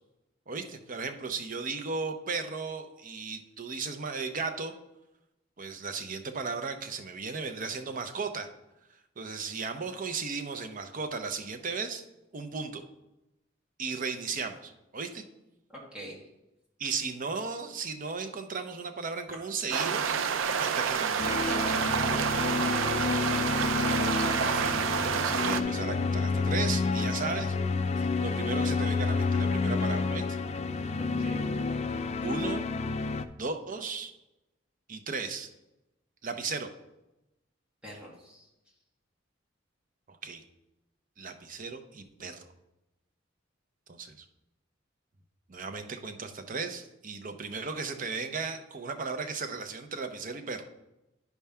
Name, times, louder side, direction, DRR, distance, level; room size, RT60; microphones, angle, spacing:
voice 1, 0.5-4.7 5.6-8.5 9.2-12.0 12.3-12.8 13.8-15.2 16.8-20.2 20.6-21.6 24.4-27.6 28.2-30.4 32.2-32.7 33.4-34.1 34.9-35.5 36.2-36.7 40.1-40.4 41.2-42.4 43.9-44.2 45.5-50.6, right 4 dB, 45° right, 7 dB, 0.7 m, -36 dB
voice 2, 15.7-16.2 27.9-28.1 31.0-31.4 37.8-38.5, right 1 dB, 5° right, -4 dB, 2.0 m, -46 dB
sound 1, 19.7-25.6, right 7 dB, 80° right, 0.5 m, -28 dB
sound 2, 21.2-33.2, left 4 dB, 35° left, 0.4 m, -29 dB
9.7 x 3.5 x 5.6 m, 0.94 s
head